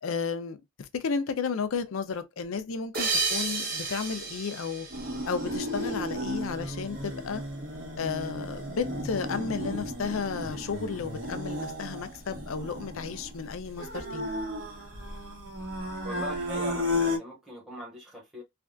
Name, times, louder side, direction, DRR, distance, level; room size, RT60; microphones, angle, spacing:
voice 1, 0.0-4.9 5.3-7.4 8.0-14.3, left 5 dB, 80° left, 0.5 m, -33 dB
sound 1, 2.9-6.0, right 4 dB, 45° right, 0.9 m, -32 dB
sound 2, 4.9-17.2, left 1 dB, 70° right, 1.5 m, -34 dB
voice 2, 16.0-18.4, equal, 5° right, 1.2 m, -41 dB
3.3 x 2.4 x 2.3 m
head